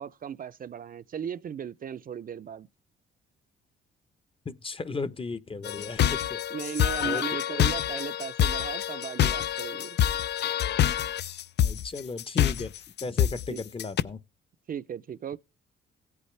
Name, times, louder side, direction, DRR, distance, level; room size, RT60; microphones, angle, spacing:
voice 1, 0.0-2.7 6.5-10.0 13.3-13.6 14.7-15.4, right 8 dB, 45° right, 0.6 m, -37 dB
voice 2, 4.4-6.4 7.0-7.2 11.6-12.7 13.0-14.2, left 4 dB, 25° left, 0.9 m, -35 dB
sound 1, 5.6-14.0, left 10 dB, 60° left, 0.5 m, -26 dB
16.5 x 8.3 x 3.3 m
cardioid pair, 90°, 20 cm